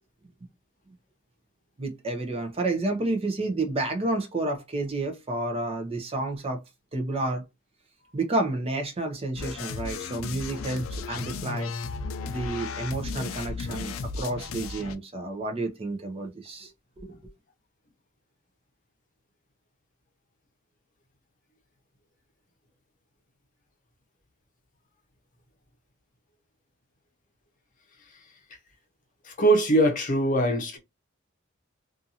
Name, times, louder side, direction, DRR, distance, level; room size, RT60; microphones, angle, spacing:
voice 1, 1.8-6.6 6.9-7.4 8.1-11.7 12.2-16.7 17.0-17.2, right 2 dB, 30° right, 0.6 m, -30 dB
sound 1, 9.4-15.0, left 4 dB, 85° left, 0.4 m, -35 dB
voice 2, 29.2-30.8, right 1 dB, 40° left, 0.7 m, -22 dB
2.6 x 2.4 x 2.7 m
head